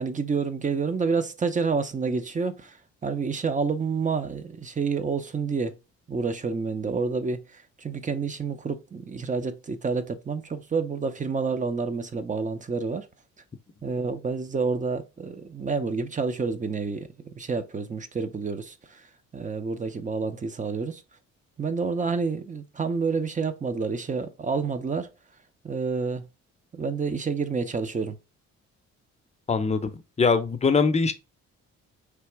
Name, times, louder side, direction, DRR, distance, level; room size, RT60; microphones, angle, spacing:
voice 1, 0.0-5.8 6.1-13.1 13.8-19.1 19.3-21.0 21.6-25.1 25.6-26.2 26.7-28.2, right 4 dB, 25° right, 0.6 m, -29 dB
voice 2, 29.5-29.9 30.2-31.1, left 4 dB, 20° left, 0.6 m, -22 dB
3.4 x 2.9 x 4.5 m
cardioid pair, 90°, 30 cm